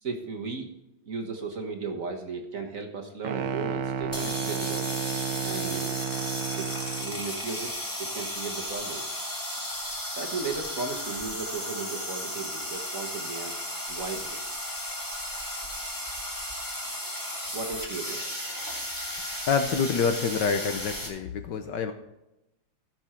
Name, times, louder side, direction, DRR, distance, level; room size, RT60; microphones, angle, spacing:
voice 1, 0.0-0.7 1.0-4.9 5.4-5.9 6.6-6.7 7.0-7.7 8.0-9.1 10.1-13.6 13.9-14.4 17.5-18.2, right 4 dB, 45° right, 2 dB, 1.5 m, -35 dB
sound 1, 3.2-7.2, right 7 dB, 75° right, 1.4 m, -32 dB
sound 2, 4.0-21.1, left 1 dB, 10° left, 2.1 m, -35 dB
voice 2, 19.5-21.9, left 6 dB, 65° left, 8 dB, 1.3 m, -27 dB
15.5 x 6.3 x 4.4 m, 0.92 s
omnidirectional pair, 2.3 m